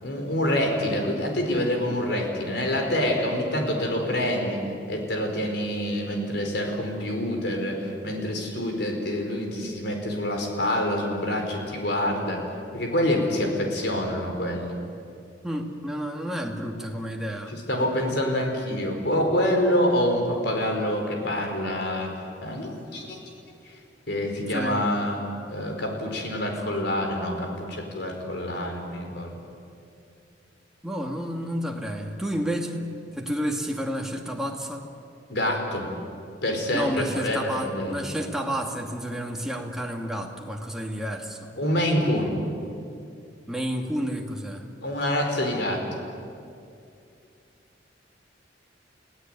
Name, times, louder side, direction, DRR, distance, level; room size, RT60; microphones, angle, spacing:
voice 1, 0.0-4.6 4.9-12.4 12.7-14.7 17.5-22.1 22.4-23.2 24.1-25.2 25.5-29.3 35.3-35.9 36.4-38.0 41.6-42.4 44.8-45.8, left 1 dB, 65° left, 2 dB, 4.9 m, -26 dB
voice 2, 15.4-17.6 22.9-23.0 24.5-24.9 30.8-34.8 36.7-41.5 43.5-44.6, equal, 5° right, 0 dB, 2.4 m, -30 dB
30.0 x 17.5 x 9.3 m, 2.5 s
head